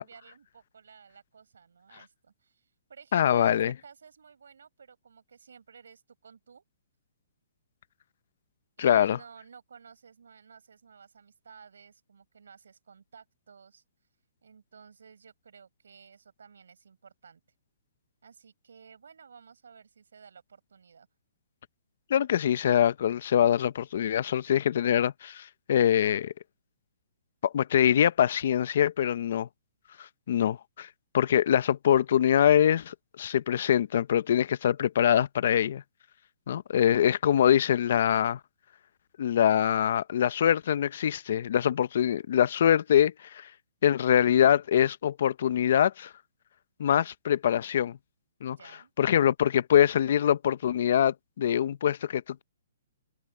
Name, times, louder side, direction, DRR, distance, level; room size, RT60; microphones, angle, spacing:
voice 1, 0.0-6.6 8.8-14.1 14.4-17.4 18.2-21.1 48.4-48.9, right 6 dB, 85° right, 5.0 m, -54 dB
voice 2, 3.1-3.7 8.8-9.2 22.1-26.3 27.4-29.5 30.0-30.9 31.1-35.8 36.5-38.4 39.2-43.5 43.8-46.1 46.8-48.0 48.4-48.6 49.0-52.4, left 10 dB, 50° left, 0.6 m, -24 dB
hypercardioid pair, 170°, 0 cm